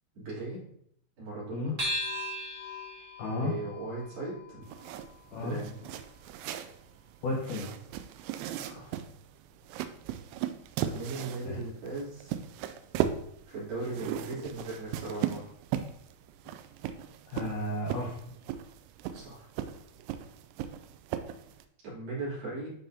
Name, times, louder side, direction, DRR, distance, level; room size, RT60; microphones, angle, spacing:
voice 1, 0.1-0.6 1.2-1.8 3.4-4.7 5.3-5.8 8.7-9.0 10.8-12.4 13.5-15.5 19.1-19.5 21.8-22.7, right 3 dB, 55° right, -8 dB, 4.6 m, -38 dB
sound 1, 1.8-6.5, left 1 dB, 15° right, 1.8 m, -39 dB
voice 2, 3.2-3.5 5.3-5.6 7.2-7.7 8.6-8.7 11.5-11.6 17.3-18.2, left 2 dB, 80° left, -2 dB, 1.8 m, -33 dB
sound 2, 4.6-21.6, right 10 dB, 85° right, 2.3 m, -37 dB
11.5 x 4.6 x 2.7 m, 0.71 s
omnidirectional pair, 5.1 m